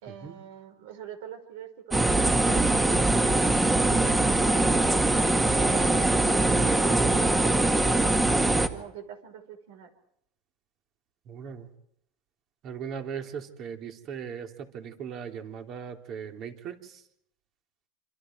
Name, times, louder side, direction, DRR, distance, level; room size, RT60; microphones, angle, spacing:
voice 1, 0.0-2.7 3.7-4.7 5.5-8.1 8.7-9.9, right 9 dB, 80° right, 9 dB, 4.9 m, -42 dB
sound 1, 1.9-8.7, right 2 dB, 10° right, 1.9 m, -22 dB
voice 2, 11.3-11.7 12.6-17.0, right 7 dB, 45° right, 4 dB, 3.6 m, -39 dB
27.0 x 26.5 x 4.7 m, 0.74 s
supercardioid pair, 120°, 0 cm